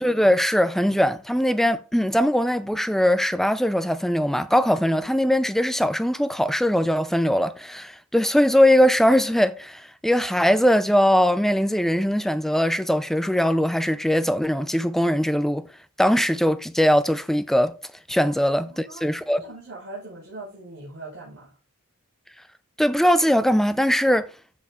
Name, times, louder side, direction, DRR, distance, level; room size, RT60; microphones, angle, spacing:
voice 1, 0.0-15.7 16.0-17.7 18.1-19.4 22.8-24.3, equal, ahead, 0.4 m, -21 dB
voice 2, 18.6-21.6, right 2 dB, 55° right, 4.8 m, -41 dB
13.5 x 5.2 x 3.6 m
head